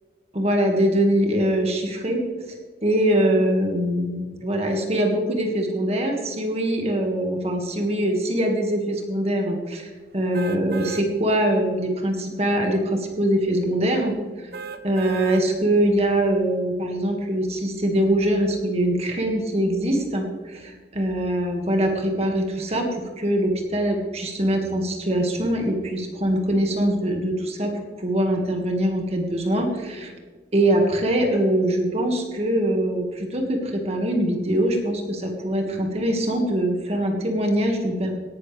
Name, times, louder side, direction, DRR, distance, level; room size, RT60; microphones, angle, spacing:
voice 1, 0.3-2.2 2.5-2.6 2.8-14.5 14.8-30.1 30.5-38.1, right 1 dB, 35° right, 2 dB, 1.9 m, -23 dB
sound 1, 10.3-11.1 11.6-11.7 14.5-15.5 16.0-16.1, right 5 dB, 60° right, 0.8 m, -35 dB
17.5 x 12.0 x 3.4 m, 1.4 s
head